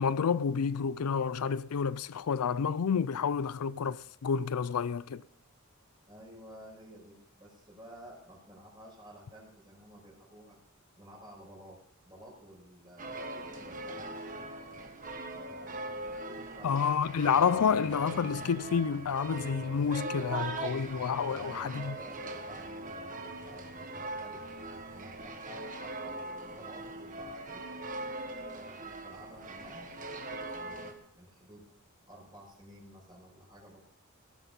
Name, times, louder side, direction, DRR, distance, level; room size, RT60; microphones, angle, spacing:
voice 1, 0.0-5.2 16.6-22.0, left 6 dB, 85° left, 0.5 m, -29 dB
voice 2, 6.1-10.6 11.0-14.2 15.4-16.9 21.3-24.5 24.8-27.7 28.5-29.9 30.4-31.7 32.1-33.9, equal, 20° right, 5.3 m, -53 dB
sound 1, 13.0-30.9, right 2 dB, 35° right, 1.4 m, -41 dB
sound 2, 17.1-25.1, right 2 dB, 60° right, 2.2 m, -58 dB
18.5 x 8.1 x 5.4 m
head